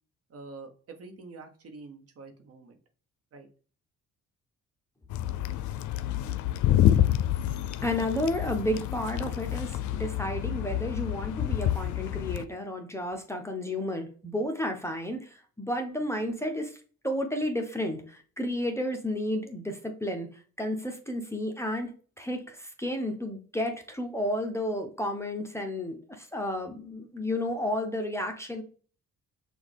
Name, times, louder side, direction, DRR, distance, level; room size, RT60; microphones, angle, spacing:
voice 1, 0.3-2.8 3.3-3.5, right 3 dB, 50° right, 5 dB, 1.0 m, -46 dB
sound 1, 5.1-12.4, left 12 dB, 80° left, 0.5 m, -28 dB
voice 2, 7.8-16.8 17.0-28.6, left 1 dB, 10° left, 3 dB, 0.7 m, -32 dB
6.0 x 2.4 x 3.4 m, 0.41 s
cardioid pair, 90°, 30 cm